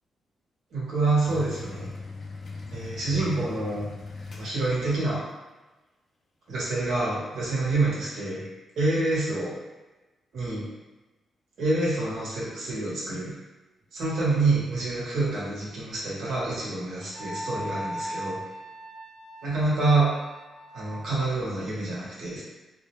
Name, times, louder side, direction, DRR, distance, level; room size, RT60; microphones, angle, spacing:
voice 1, 0.7-1.9 2.7-3.9 4.3-5.2 6.5-8.4 8.8-9.5 10.3-10.7 11.6-13.3 13.9-18.4 19.4-20.1 20.7-22.4, right 2 dB, 80° right, -6 dB, 0.8 m, -27 dB
sound 1, 1.3-5.1, left 3 dB, 45° left, 0.4 m, -39 dB
Wind instrument woodwind instrument, 17.1-21.2, equal, 80° left, 1.0 m, -38 dB
2.2 x 2.0 x 2.9 m, 1.1 s
cardioid pair, 90°, 0 cm